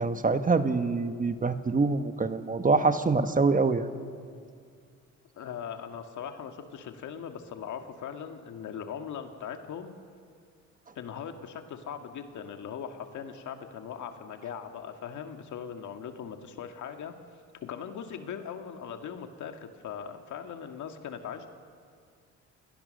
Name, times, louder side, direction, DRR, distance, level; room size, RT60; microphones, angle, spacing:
voice 1, 0.0-3.9, right 4 dB, 25° right, 9 dB, 1.2 m, -25 dB
voice 2, 5.4-10.0 11.0-17.1 17.6-21.5, left 7 dB, 75° left, 6 dB, 1.9 m, -40 dB
28.5 x 18.5 x 6.6 m, 2.2 s
cardioid pair, 90°, 30 cm